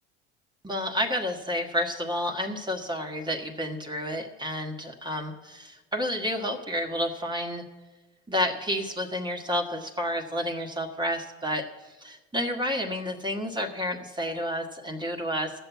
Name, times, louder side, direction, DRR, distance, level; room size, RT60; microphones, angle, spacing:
voice 1, 0.6-7.6 8.3-11.7 12.0-15.5, equal, 15° right, 3 dB, 1.5 m, -30 dB
14.0 x 6.8 x 8.3 m, 1.2 s
hypercardioid pair, 75°, 34 cm